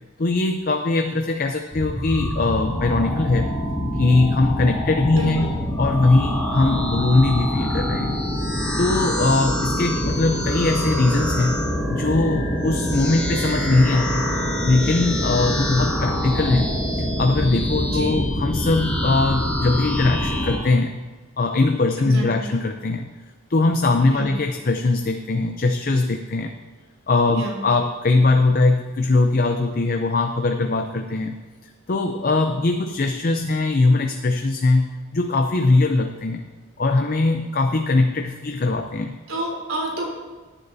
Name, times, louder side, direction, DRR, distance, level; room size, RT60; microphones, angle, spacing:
voice 1, 0.2-3.5 3.9-8.2 8.8-11.6 11.9-14.3 14.6-16.7 17.2-21.0 21.4-23.1 23.5-26.6 27.1-31.4 31.9-36.4 36.8-39.2, left 2 dB, 45° left, 5 dB, 0.5 m, -21 dB
sound 1, 1.7-20.6, equal, 5° left, 2.1 m, -25 dB
voice 2, 5.1-5.5 17.9-18.2 21.9-22.5 24.1-24.3 27.3-27.6 39.3-40.1, right 1 dB, 75° right, -2 dB, 3.5 m, -29 dB
17.5 x 9.9 x 2.7 m, 1.3 s
head